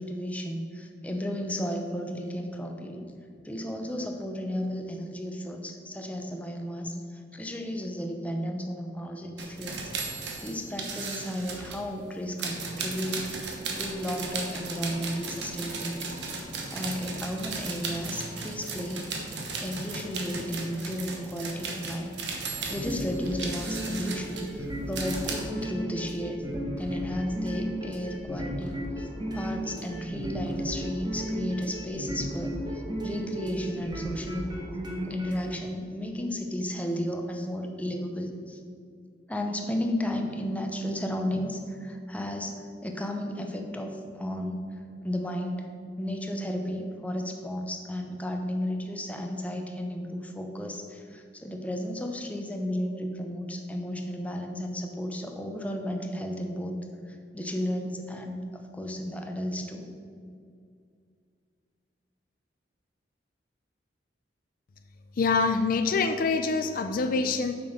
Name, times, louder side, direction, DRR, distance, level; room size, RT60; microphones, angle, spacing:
voice 1, 0.0-3.1 3.4-9.9 10.4-16.3 16.7-19.1 19.6-22.2 22.7-26.4 26.8-34.5 35.0-38.6 39.3-44.6 45.0-45.6 46.0-56.8 57.1-58.4 58.7-59.9, equal, 10° left, 3 dB, 0.7 m, -33 dB
sound 1, 9.4-11.8 12.4-25.4, right 4 dB, 85° right, 1.2 m, -36 dB
sound 2, 22.6-35.5, equal, 25° right, 1.3 m, -34 dB
voice 2, 65.2-67.5, left 4 dB, 50° left, 7 dB, 0.4 m, -25 dB
7.4 x 6.1 x 5.0 m, 2.3 s
head